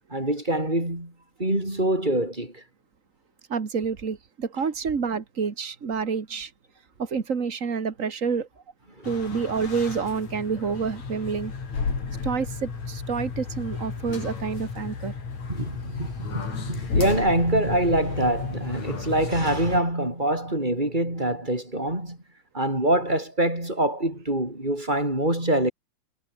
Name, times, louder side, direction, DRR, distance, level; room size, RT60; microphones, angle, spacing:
voice 1, 0.1-1.1 1.4-2.6 15.5-22.2 22.5-25.7, right 1 dB, 10° right, 6.8 m, -25 dB
voice 2, 3.5-6.5 7.0-8.5 9.0-11.5 12.2-15.1, right 5 dB, 70° right, 0.7 m, -28 dB
sound 1, 9.0-19.8, left 5 dB, 45° left, 5.6 m, -33 dB
omnidirectional pair, 4.4 m